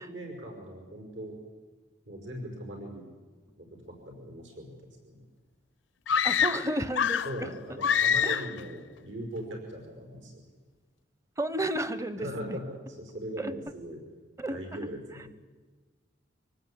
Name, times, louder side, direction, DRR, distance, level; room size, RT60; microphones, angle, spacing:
voice 1, 0.0-1.4 2.1-3.1 3.6-5.2 7.2-10.5 12.2-14.0 14.5-15.3, equal, 75° right, 3 dB, 5.3 m, -40 dB
sound 1, 6.1-7.4 7.8-8.6, left 7 dB, 75° left, 0.6 m, -26 dB
voice 2, 6.2-7.5 8.2-8.4 11.4-12.6 13.4-13.5 14.4-14.6, right 1 dB, 15° right, 13 dB, 0.8 m, -32 dB
25.0 x 18.5 x 8.6 m, 1.4 s
head